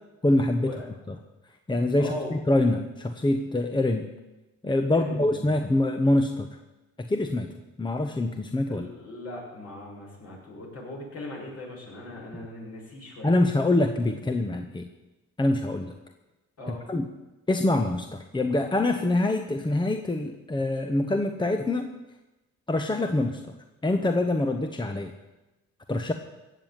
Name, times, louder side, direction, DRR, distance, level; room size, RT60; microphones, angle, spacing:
voice 1, 0.2-0.7 1.1-1.2 1.7-4.1 4.6-6.5 7.0-7.5 7.8-8.9 13.2-14.9 15.4-15.9 16.7-17.1 17.5-21.9 22.7-23.4 23.8-25.1 25.9-26.1, left 2 dB, 15° left, 6 dB, 1.1 m, -25 dB
voice 2, 2.0-2.3 4.9-5.5 8.7-13.4 16.6-16.8, left 1 dB, 50° left, -2 dB, 6.7 m, -39 dB
16.5 x 7.4 x 9.6 m, 1.0 s
cardioid pair, 90°, 30 cm